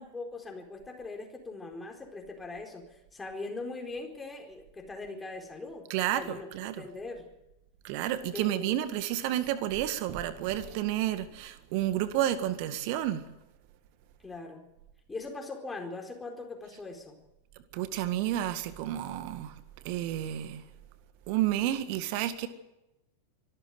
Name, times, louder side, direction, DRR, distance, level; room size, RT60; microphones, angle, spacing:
voice 1, 0.0-5.9 6.1-6.5 6.8-7.3 8.3-8.7 9.4-9.5 14.2-14.6 15.1-17.2, left 3 dB, 10° left, 4.5 m, -41 dB
voice 2, 5.9-6.8 7.8-13.2 17.7-19.5 19.8-20.6 21.3-22.5, right 12 dB, 45° right, 1.8 m, -30 dB
24.5 x 13.5 x 9.4 m
figure-of-eight pair, 90°, 0 cm